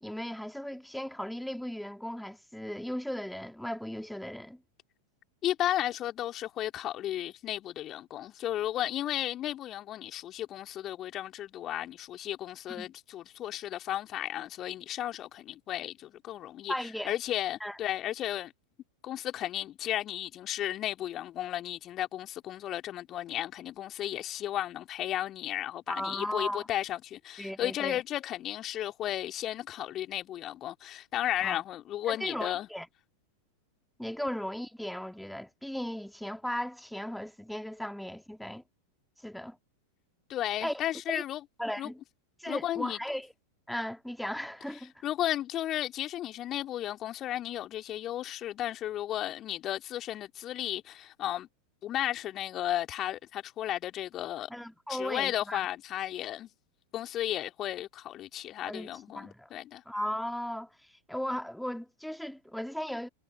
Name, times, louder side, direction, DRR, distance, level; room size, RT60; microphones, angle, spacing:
voice 1, 0.0-4.6 12.7-12.9 16.7-17.1 17.6-17.8 25.9-26.7 27.4-28.0 31.4-31.6 32.1-32.9 34.0-38.6 39.2-39.6 40.6-40.8 41.1-41.2 41.6-42.0 42.4-43.3 43.7-44.9 54.5-55.6 58.7-59.5 59.9-60.7 61.1-63.1, equal, ahead, 2.1 m, -36 dB
voice 2, 5.4-16.7 17.0-18.5 19.0-32.7 40.3-41.4 41.8-41.9 42.5-43.0 45.0-51.5 51.8-54.5 54.9-56.5 56.9-59.8, left 12 dB, 30° left, 3.0 m, -34 dB
figure-of-eight pair, 90°, 0 cm